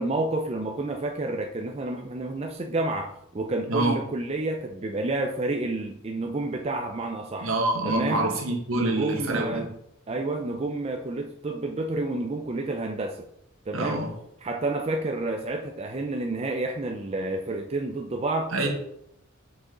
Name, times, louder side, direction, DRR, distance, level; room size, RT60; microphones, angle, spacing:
voice 1, 0.0-7.5 7.8-8.2 8.7-9.8 10.1-13.2 13.7-14.0 14.4-18.5, right 2 dB, 30° right, 3 dB, 0.5 m, -29 dB
voice 2, 7.4-9.6 13.7-14.1 18.5-18.7, right 2 dB, 70° right, 2 dB, 1.4 m, -26 dB
6.2 x 5.3 x 3.8 m, 0.77 s
head